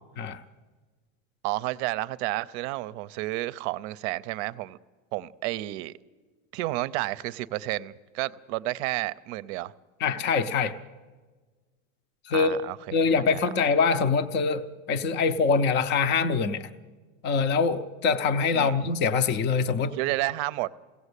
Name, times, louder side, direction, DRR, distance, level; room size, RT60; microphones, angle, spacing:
voice 1, 1.4-4.8 5.1-5.9 6.5-9.7 12.3-13.0 13.3-13.5 18.5-18.8 19.9-20.7, right 18 dB, 55° right, 0.7 m, -31 dB
voice 2, 10.0-10.7 12.3-12.6 12.9-16.7 17.2-19.9, left 5 dB, 25° left, 0.7 m, -24 dB
22.0 x 17.0 x 8.3 m
supercardioid pair, 145°, 40 cm